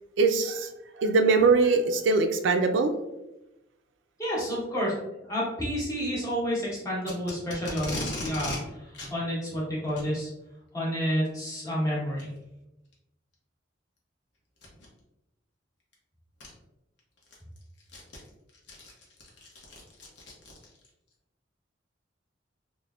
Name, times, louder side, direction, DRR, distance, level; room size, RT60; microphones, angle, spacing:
voice 1, 0.2-0.7 1.0-2.9, right 4 dB, 75° right, 6 dB, 0.3 m, -22 dB
voice 2, 4.2-10.3 10.7-12.3, equal, 20° left, -6 dB, 1.0 m, -30 dB
Packing tape duct tape, 7.0-8.6 8.9-9.1 9.8-10.1 11.2-11.5 12.2-12.3 12.9-13.0 14.6-14.9 15.9-16.0 16.4-16.5 17.0-20.9, left 1 dB, 70° left, 0.7 m, -38 dB
3.3 x 2.0 x 2.3 m, 0.92 s
head